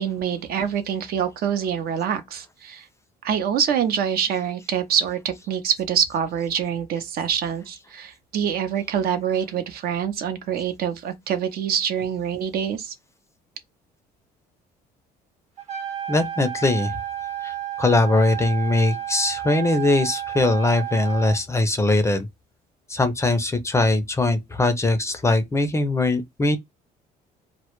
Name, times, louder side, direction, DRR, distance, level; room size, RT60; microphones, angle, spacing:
voice 1, 0.0-2.9 3.2-12.9, right 8 dB, 65° right, 0.6 m, -25 dB
Trumpet, 15.6-21.4, right 11 dB, 40° right, 0.9 m, -31 dB
voice 2, 16.1-17.0 17.4-22.3 22.9-26.6, left 2 dB, 15° left, 0.4 m, -21 dB
2.1 x 2.0 x 2.9 m
cardioid pair, 110°, 17 cm